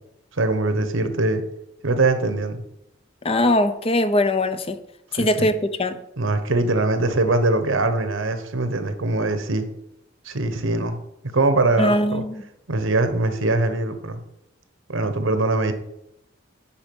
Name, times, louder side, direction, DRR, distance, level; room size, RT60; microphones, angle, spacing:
voice 1, 0.3-1.4 1.8-2.6 5.1-5.5 6.2-9.7 10.2-11.0 11.3-12.2 12.7-14.2 14.9-15.7, right 2 dB, 85° right, 9 dB, 1.1 m, -22 dB
voice 2, 3.2-4.8 5.1-6.0 11.8-12.4, left 1 dB, 30° left, 10 dB, 0.6 m, -21 dB
9.8 x 4.9 x 5.3 m, 0.82 s
head